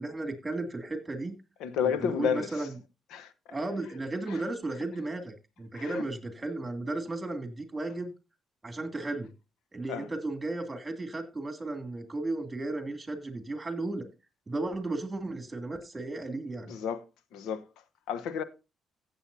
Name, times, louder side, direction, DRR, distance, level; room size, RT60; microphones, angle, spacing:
voice 1, 0.0-1.4 2.0-2.7 3.5-8.1 8.6-9.3 9.7-14.1 14.5-16.7, right 2 dB, 20° right, 2.6 m, -34 dB
voice 2, 1.6-2.7 3.1-3.3 4.3-4.4 5.7-6.0 9.9-10.1 16.7-17.0 17.3-17.6 18.1-18.4, left 7 dB, 90° left, 1.0 m, -31 dB
15.5 x 7.8 x 2.7 m
cardioid pair, 90°, 0 cm